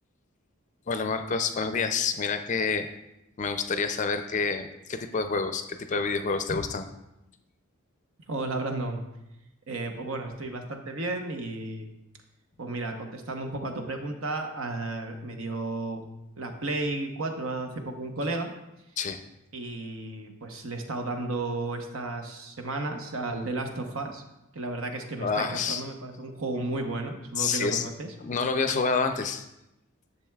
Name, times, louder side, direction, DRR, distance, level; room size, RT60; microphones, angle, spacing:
voice 1, 0.9-2.9 3.4-6.9 19.0-19.2 25.2-25.8 27.4-27.9 28.2-29.5, left 4 dB, 35° left, 8 dB, 0.4 m, -28 dB
voice 2, 8.3-9.0 9.7-11.9 12.6-16.0 16.4-18.5 19.5-24.2 24.5-28.1 28.7-28.8, right 2 dB, 75° right, 5 dB, 0.9 m, -33 dB
10.5 x 6.8 x 2.3 m, 0.89 s
head